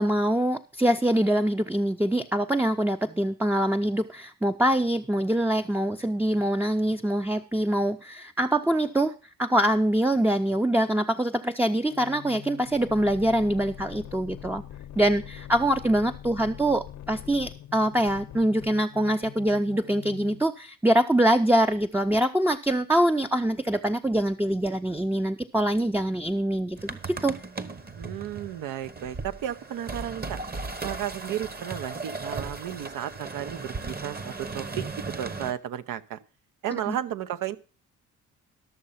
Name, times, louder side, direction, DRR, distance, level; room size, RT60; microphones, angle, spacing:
voice 1, 0.0-9.1 9.4-14.6 15.0-27.3 36.9-37.0, right 1 dB, 5° right, 6 dB, 0.6 m, -24 dB
sound 1, 11.9-20.5, left 11 dB, 60° left, 0.8 m, -43 dB
sound 2, 26.8-35.5, right 3 dB, 30° right, 1.1 m, -37 dB
voice 2, 28.0-30.4 30.8-34.8 35.2-36.2 36.6-37.6, right 11 dB, 70° right, 13 dB, 0.8 m, -33 dB
12.5 x 6.7 x 5.6 m, 0.36 s
supercardioid pair, 70°, 33 cm